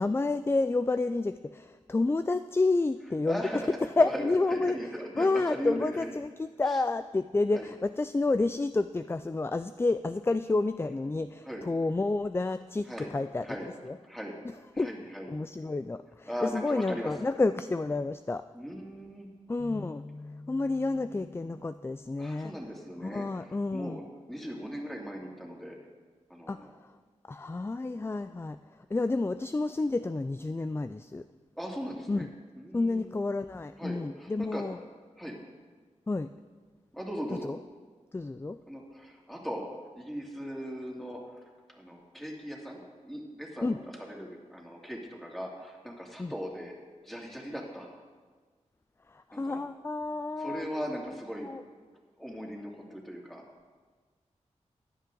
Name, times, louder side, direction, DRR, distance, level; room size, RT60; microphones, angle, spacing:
voice 1, 0.0-3.4 4.0-4.8 5.2-12.9 13.1-14.0 14.8-14.9 15.3-18.4 19.5-20.0 20.5-22.5 23.0-24.0 26.5-26.9 27.3-28.6 28.9-31.2 32.1-32.3 32.7-34.8 36.1-36.3 37.4-37.6 38.1-38.6 43.6-43.8 46.2-46.3 49.1-50.6 51.4-51.6, left 3 dB, 20° left, 12 dB, 0.3 m, -30 dB
voice 2, 3.2-6.1 6.7-6.8 7.5-7.7 11.4-11.7 12.9-13.1 13.4-13.7 14.1-14.4 14.7-15.3 16.3-17.5 18.5-19.3 22.2-23.2 23.7-25.8 26.3-26.7 31.5-32.2 32.6-33.1 33.8-34.6 35.2-35.4 36.9-37.5 38.7-39.6 39.9-46.7 47.0-47.9 49.3-49.6 50.4-51.5 52.2-53.4, equal, ahead, -2 dB, 2.6 m, -38 dB
sound 1, 19.6-25.8, left 2 dB, 75° left, 3.2 m, -50 dB
16.0 x 10.0 x 3.8 m, 1.5 s
cardioid pair, 65°, 12 cm